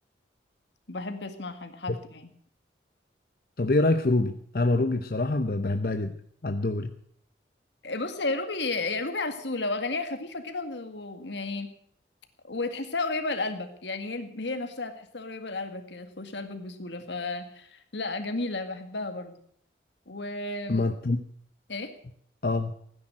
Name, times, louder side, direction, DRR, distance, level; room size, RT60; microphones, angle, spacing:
voice 1, 0.9-2.3 7.8-11.7 12.4-19.3 20.1-20.8 21.7-21.9, left 3 dB, 85° left, 8 dB, 2.0 m, -33 dB
voice 2, 3.6-6.1 6.4-6.9 20.7-21.2 22.4-22.7, left 2 dB, 55° left, 7 dB, 0.8 m, -25 dB
16.0 x 10.0 x 7.6 m, 0.64 s
head